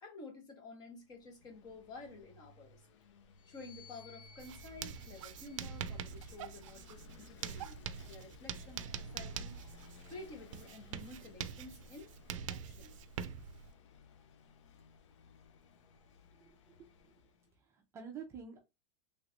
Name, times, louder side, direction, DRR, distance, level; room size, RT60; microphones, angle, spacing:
voice 1, 0.0-2.8 3.5-9.6 10.1-12.1 12.5-13.0, left 3 dB, 25° left, 0.9 m, -51 dB
Vehicle / Engine, 0.9-17.6, left 5 dB, 70° left, 0.6 m, -60 dB
sound 1, 3.3-6.9 7.7-9.3, left 5 dB, 90° left, 1.1 m, -62 dB
Writing, 4.4-13.7, right 8 dB, 80° right, 0.4 m, -44 dB
voice 2, 16.5-17.1 17.6-18.6, right 6 dB, 15° right, 0.5 m, -49 dB
3.3 x 3.1 x 2.5 m
supercardioid pair, 165°, 16 cm